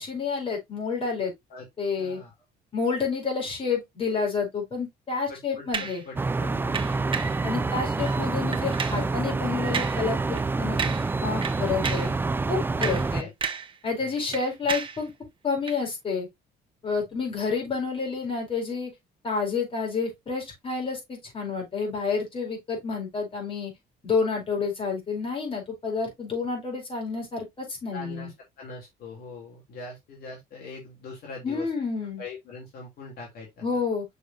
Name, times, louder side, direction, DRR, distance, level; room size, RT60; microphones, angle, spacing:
voice 1, 0.0-1.3 1.8-2.2 2.7-6.0 7.4-10.8 11.2-12.1 12.5-13.3 13.8-15.1 15.4-16.3 16.8-18.9 19.2-23.7 24.0-28.3 31.4-32.2 33.6-34.0, left 5 dB, 30° left, 4.9 m, -29 dB
voice 2, 2.0-2.3 5.3-6.9 7.5-7.9 12.7-13.3 14.0-14.1 14.6-14.7 27.9-31.7 32.2-33.8, left 4 dB, 65° left, 3.0 m, -42 dB
sound 1, 5.7-6.0 6.7-7.4 8.0-8.2 8.5-9.1 9.7-10.0 10.3-10.5 10.8-11.2 11.4-12.2 12.6-13.8 14.0-15.0 15.6-15.8, right 6 dB, 30° right, 1.1 m, -32 dB
sound 2, 6.2-13.2, right 3 dB, 15° right, 0.3 m, -27 dB
6.5 x 5.4 x 2.7 m
cardioid pair, 110°, 17 cm